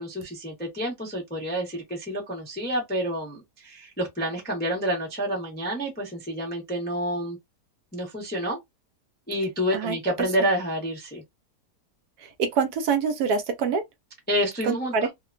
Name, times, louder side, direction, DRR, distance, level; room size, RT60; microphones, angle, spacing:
voice 1, 0.0-7.4 7.9-8.6 9.3-11.2 14.3-14.9, equal, 15° left, 0.4 m, -28 dB
voice 2, 12.4-13.8 14.6-15.1, right 5 dB, 75° right, 1.0 m, -25 dB
2.8 x 2.1 x 2.4 m
omnidirectional pair, 1.8 m